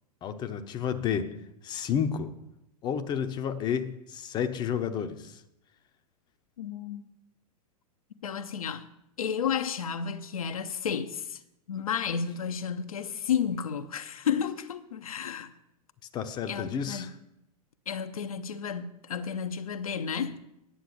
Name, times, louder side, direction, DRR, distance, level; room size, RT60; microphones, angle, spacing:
voice 1, 0.2-1.3 1.6-2.3 2.8-5.4 16.1-17.1, left 8 dB, 20° left, 0.8 m, -31 dB
voice 2, 6.6-7.1 8.2-8.9 9.2-11.4 11.7-15.5 16.5-17.1 17.9-20.4, left 7 dB, 65° left, 0.8 m, -32 dB
10.0 x 7.5 x 6.9 m
figure-of-eight pair, 100°, 20 cm